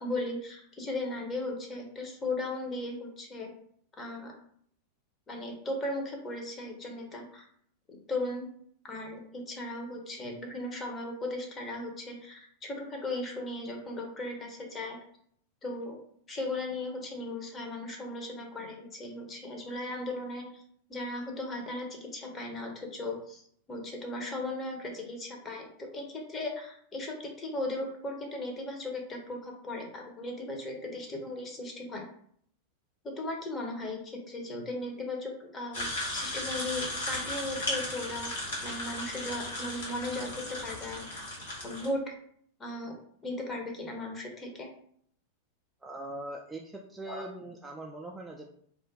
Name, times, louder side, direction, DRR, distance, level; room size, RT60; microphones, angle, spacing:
voice 1, 0.0-3.5 4.0-4.3 5.3-7.5 8.1-8.5 8.8-15.0 15.6-16.0 16.3-20.6 20.9-23.4 23.7-32.0 33.0-38.3 38.6-40.3 40.6-41.3 41.6-42.0 42.6-42.9 43.2-44.7 47.1-47.2, left 2 dB, 20° left, 1 dB, 0.8 m, -37 dB
sound 1, 35.7-41.9, left 1 dB, 65° left, 1.1 m, -36 dB
voice 2, 45.8-48.4, right 1 dB, 10° right, -1 dB, 0.3 m, -41 dB
2.4 x 2.1 x 3.8 m, 0.64 s
figure-of-eight pair, 90°, 0 cm